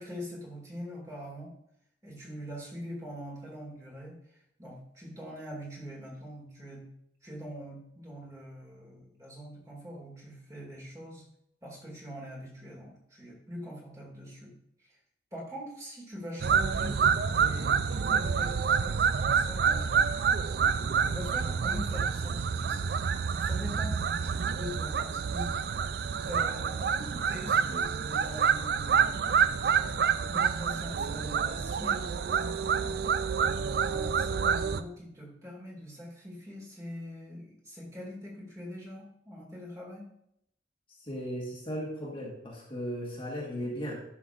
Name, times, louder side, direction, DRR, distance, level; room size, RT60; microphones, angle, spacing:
voice 1, 0.0-1.5 2.0-4.2 4.6-6.9 7.2-11.2 11.6-14.5 14.8-15.0 15.3-17.0 17.3-20.1 21.0-23.0 23.4-25.5 26.2-32.6 33.3-40.0, equal, 20° right, -3 dB, 2.2 m, -43 dB
sound 1, 16.4-34.8, right 6 dB, 60° right, 0.4 m, -28 dB
voice 2, 41.0-44.0, equal, 30° left, -3 dB, 1.5 m, -36 dB
11.0 x 6.2 x 2.5 m, 0.74 s
head